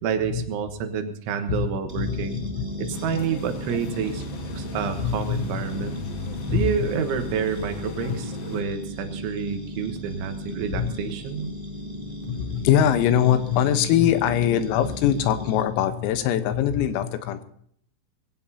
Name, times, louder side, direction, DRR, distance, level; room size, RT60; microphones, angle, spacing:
voice 1, 0.0-2.5 2.8-4.2 4.5-6.0 6.5-11.5, right 7 dB, 70° right, 7 dB, 3.5 m, -29 dB
sound 1, 1.9-15.6, equal, 20° right, 1.2 m, -36 dB
voice 2, 2.0-2.9 5.0-5.9 6.5-6.6 10.7-10.9 12.0-17.4, left 10 dB, 90° left, 10 dB, 3.8 m, -23 dB
sound 2, 2.9-8.6, left 4 dB, 65° left, 2.5 m, -37 dB
22.0 x 17.0 x 2.8 m, 0.65 s
omnidirectional pair, 5.9 m